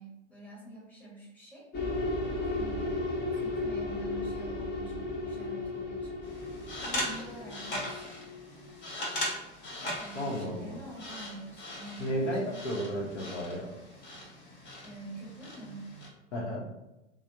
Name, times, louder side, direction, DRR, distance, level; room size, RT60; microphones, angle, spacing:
voice 1, 0.0-1.7 2.4-6.1 6.8-8.2 10.0-12.7 14.8-15.9, right 1 dB, 5° left, -7 dB, 1.1 m, -46 dB
sound 1, 1.7-8.8, left 2 dB, 25° left, 0.7 m, -35 dB
sound 2, 6.2-16.1, left 1 dB, 45° left, 1.1 m, -40 dB
voice 2, 10.1-10.8 12.0-13.7 16.3-16.7, equal, 70° left, -2 dB, 0.9 m, -33 dB
3.2 x 2.1 x 2.7 m, 0.96 s
figure-of-eight pair, 95°, 37 cm